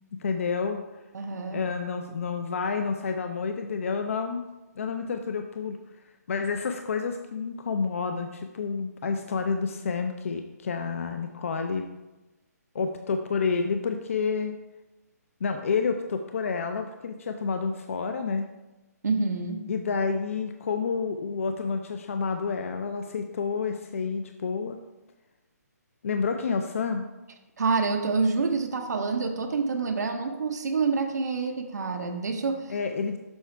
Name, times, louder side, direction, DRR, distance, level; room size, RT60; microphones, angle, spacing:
voice 1, 0.2-0.8 1.5-4.5 4.8-5.8 6.3-11.9 12.7-14.5 15.4-18.5 19.7-24.8 26.0-27.1 32.7-33.2, left 5 dB, 50° left, 6 dB, 0.5 m, -29 dB
voice 2, 1.1-1.6 19.0-19.6 27.6-32.7, right 4 dB, 75° right, 4 dB, 0.9 m, -27 dB
7.0 x 4.7 x 4.5 m, 1.1 s
hypercardioid pair, 170°, 9 cm